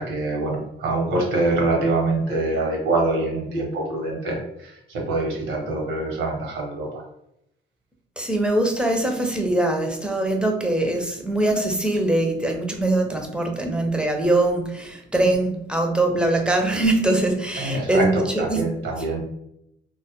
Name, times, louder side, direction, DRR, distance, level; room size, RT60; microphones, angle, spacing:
voice 1, 0.0-7.0 17.6-19.2, right 2 dB, 80° right, 0 dB, 0.8 m, -25 dB
voice 2, 8.2-18.7, right 2 dB, 5° right, 3 dB, 0.4 m, -22 dB
2.1 x 2.1 x 2.8 m, 0.80 s
cardioid pair, 90°, 20 cm